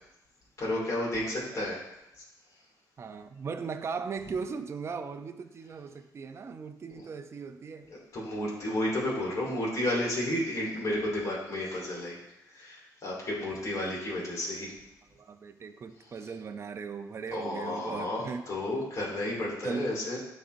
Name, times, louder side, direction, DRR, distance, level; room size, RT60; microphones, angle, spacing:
voice 1, 0.6-1.8 8.1-12.2 12.5-14.7 17.3-20.2, left 1 dB, 50° left, -5 dB, 2.5 m, -32 dB
voice 2, 1.2-1.6 3.0-7.9 15.1-18.5 19.6-20.0, right 5 dB, 40° right, 8 dB, 0.5 m, -38 dB
12.0 x 4.2 x 2.6 m, 0.92 s
cardioid pair, 100°, 7 cm